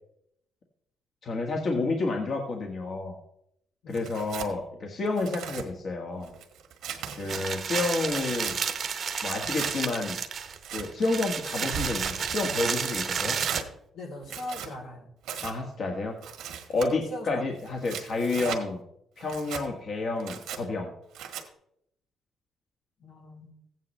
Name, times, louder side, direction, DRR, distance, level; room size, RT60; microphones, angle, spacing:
voice 1, 1.2-3.2 3.9-6.3 7.1-8.6 9.2-10.2 10.7-13.4 15.4-16.2 16.7-18.8 19.2-20.9, left 3 dB, 55° left, 1 dB, 1.5 m, -30 dB
Tearing, 3.9-4.5 5.1-5.7 6.2-7.4 7.9-8.6 9.3-9.7 10.4-10.9 11.5-12.5 13.3-13.7 14.2-14.7 15.2-15.5 16.2-16.9 17.6-18.6 19.2-19.6 20.2-20.6 21.1-21.4, right 8 dB, 85° right, 1.5 m, -38 dB
voice 2, 6.9-7.6 13.9-15.1 16.7-17.4 23.0-23.5, left 1 dB, 90° left, -1 dB, 3.4 m, -41 dB
sound 1, 7.3-13.6, right 6 dB, 50° right, 0.9 m, -31 dB
15.0 x 9.1 x 3.2 m, 0.75 s
cardioid pair, 90°, 0 cm